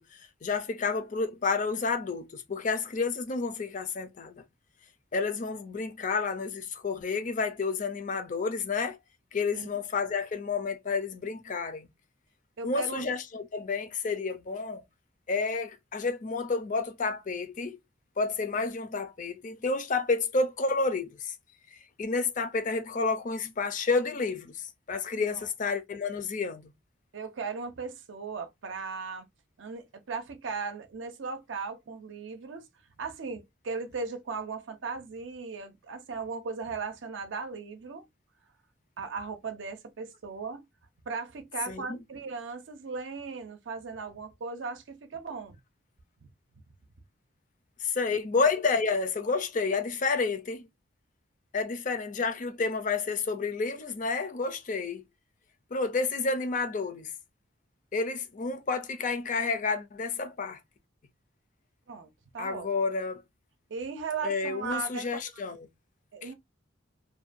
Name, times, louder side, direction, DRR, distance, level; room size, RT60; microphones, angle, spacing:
voice 1, 0.0-4.3 5.1-9.0 9.3-11.9 12.6-14.8 15.3-17.8 18.2-21.3 21.7-26.7 41.7-42.0 47.8-50.7 51.5-55.0 55.7-57.1 57.9-60.6 62.4-63.2 64.2-65.6 66.2-66.3, left 4 dB, 40° left, 0.4 m, -30 dB
voice 2, 12.6-13.0 25.3-25.4 27.1-29.3 29.6-32.7 33.0-38.1 39.0-40.6 41.1-45.6 46.2-46.3 61.9-62.7 63.7-65.2 66.1-66.3, right 4 dB, 65° right, 0.5 m, -37 dB
2.6 x 2.2 x 2.5 m
head